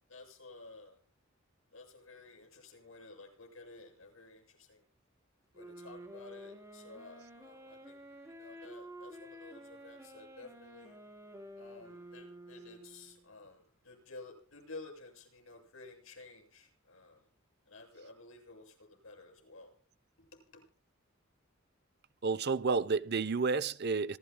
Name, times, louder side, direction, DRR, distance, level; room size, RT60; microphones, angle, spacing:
voice 1, 0.1-1.0 1.7-4.8 5.5-8.0 8.3-11.0 11.6-17.2 17.7-19.7 20.5-20.6, left 3 dB, 85° left, 7.2 m, -53 dB
sound 1, 5.5-13.2, equal, 15° right, 4.0 m, -51 dB
voice 2, 22.2-24.2, right 4 dB, 55° right, 0.7 m, -30 dB
26.0 x 14.5 x 2.2 m
head